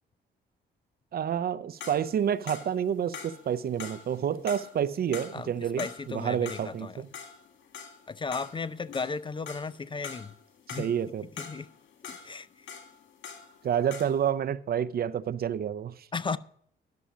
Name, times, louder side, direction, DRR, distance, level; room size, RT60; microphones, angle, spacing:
voice 1, 1.1-7.1 10.8-11.3 13.6-16.1, right 9 dB, 50° right, 0.6 m, -29 dB
sound 1, 1.8-13.6 13.9-14.3, left 6 dB, 70° left, 2.0 m, -44 dB
voice 2, 5.8-7.0 8.1-10.3 10.7-10.9 11.4-11.7 12.0-12.7 16.1-16.4, left 4 dB, 25° left, 0.4 m, -35 dB
11.5 x 6.9 x 6.1 m
cardioid pair, 90°, 20 cm